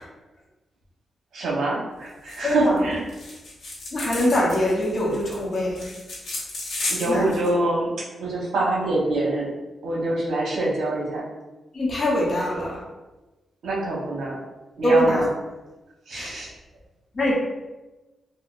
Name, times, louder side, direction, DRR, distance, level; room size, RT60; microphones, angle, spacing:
voice 1, 1.3-3.0 6.9-7.9 8.2-9.5 9.8-11.2 13.6-14.4 14.8-15.3 16.1-16.5, right 2 dB, 80° right, -4 dB, 0.9 m, -25 dB
sound 1, 2.3-2.5 2.8-2.9 3.1-7.5, left 2 dB, 75° left, 1.3 m, -33 dB
voice 2, 3.9-5.8 7.1-7.3 11.8-12.7 14.8-15.2 16.1-16.3 17.2-17.3, equal, 35° left, -4 dB, 0.8 m, -22 dB
4.3 x 2.1 x 2.4 m, 1.1 s
wide cardioid pair, 165°, 0 cm